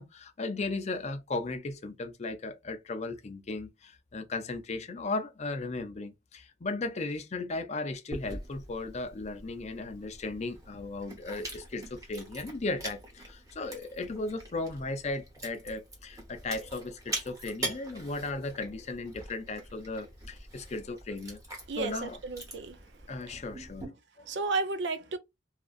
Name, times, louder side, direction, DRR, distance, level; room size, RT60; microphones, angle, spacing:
voice 1, 0.0-21.4 21.8-22.2 23.1-23.9 24.2-24.3, left 3 dB, 35° left, 0.5 m, -36 dB
Chewing mastication, 8.1-23.8, right 1 dB, 20° right, 1.1 m, -44 dB
voice 2, 21.7-22.8 23.3-23.4 24.2-25.2, right 3 dB, 70° right, 0.5 m, -33 dB
2.8 x 2.5 x 2.4 m
head